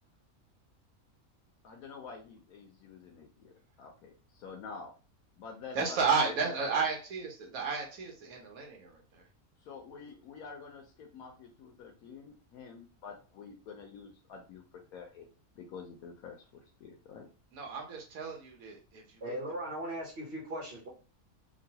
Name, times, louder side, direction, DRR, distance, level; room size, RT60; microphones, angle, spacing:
voice 1, 1.6-4.9 5.3-6.8 9.6-15.3 15.5-17.3, left 5 dB, 85° left, 2 dB, 1.1 m, -48 dB
voice 2, 5.7-9.2 17.5-19.4, right 5 dB, 75° right, 1 dB, 1.2 m, -33 dB
voice 3, 19.2-20.9, right 1 dB, 50° right, -3 dB, 1.0 m, -38 dB
3.0 x 2.6 x 2.7 m, 0.34 s
omnidirectional pair, 1.5 m